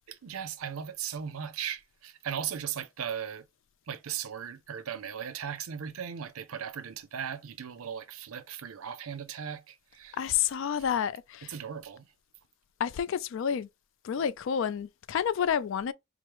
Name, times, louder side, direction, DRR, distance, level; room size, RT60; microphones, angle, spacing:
voice 1, 0.1-3.4 3.9-10.2 11.5-12.1, right 8 dB, 75° right, 0.5 m, -37 dB
voice 2, 10.1-11.5 12.8-13.7 14.0-15.9, left 8 dB, 60° left, 0.3 m, -29 dB
4.6 x 2.0 x 2.9 m
head